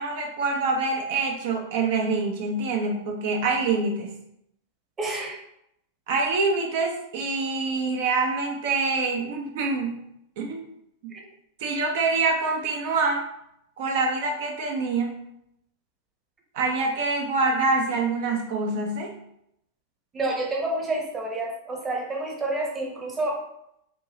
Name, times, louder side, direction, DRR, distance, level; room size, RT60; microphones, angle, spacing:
voice 1, 0.0-4.1 6.1-10.0 10.4-10.6 11.6-13.2 13.8-15.2 16.5-19.1, right 3 dB, 55° right, 1 dB, 0.5 m, -25 dB
voice 2, 5.0-5.4 11.1-11.2 20.1-23.4, right 2 dB, 20° right, 0 dB, 0.9 m, -29 dB
4.4 x 2.6 x 3.0 m, 0.78 s
figure-of-eight pair, 90°, 0 cm